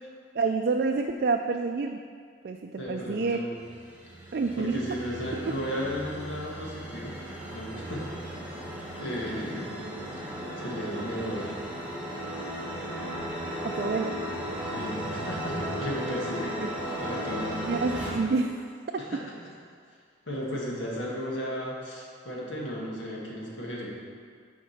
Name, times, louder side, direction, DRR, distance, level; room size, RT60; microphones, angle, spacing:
voice 1, 0.3-2.0 2.4-3.4 4.3-5.0 5.5-5.6 13.6-14.2 17.7-18.7 18.9-19.2, right 4 dB, 50° right, 4 dB, 0.3 m, -28 dB
voice 2, 2.8-3.6 4.6-7.2 7.5-8.4 8.9-9.8 10.6-11.6 14.7-17.7 19.0-19.5 20.3-23.9, equal, 85° left, -4 dB, 1.9 m, -35 dB
sound 1, 3.6-18.2, equal, 10° right, 1.1 m, -36 dB
7.5 x 5.1 x 6.5 m, 2.1 s
head